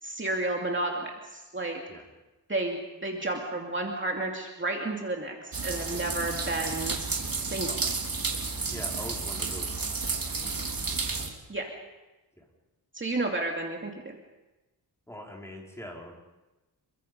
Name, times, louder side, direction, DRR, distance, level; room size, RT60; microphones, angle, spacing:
voice 1, 0.0-1.8 2.5-7.0 7.4-7.8 11.5-11.7 12.9-14.2, right 2 dB, 30° right, 0 dB, 2.7 m, -32 dB
sound 1, 5.5-11.3, right 4 dB, 55° right, 3.4 m, -32 dB
voice 2, 8.7-9.8 12.4-12.5 15.1-16.2, equal, 5° left, -2 dB, 5.2 m, -42 dB
28.0 x 24.0 x 5.5 m, 1.1 s
wide cardioid pair, 125°, 42 cm